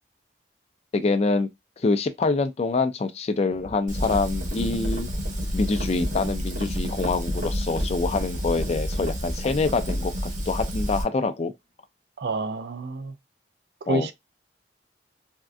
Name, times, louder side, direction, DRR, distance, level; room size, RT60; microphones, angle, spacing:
voice 1, 0.9-1.5 1.8-5.1 5.5-10.1 10.5-11.5 13.9-14.1, left 3 dB, 35° left, 0.3 m, -25 dB
sound 1, 3.5-10.1, equal, 80° right, 1.7 m, -38 dB
Fire, 3.9-11.0, equal, 45° right, 0.8 m, -29 dB
voice 2, 12.2-13.2 13.9-14.1, right 2 dB, 65° right, 0.4 m, -28 dB
3.5 x 2.5 x 2.2 m
head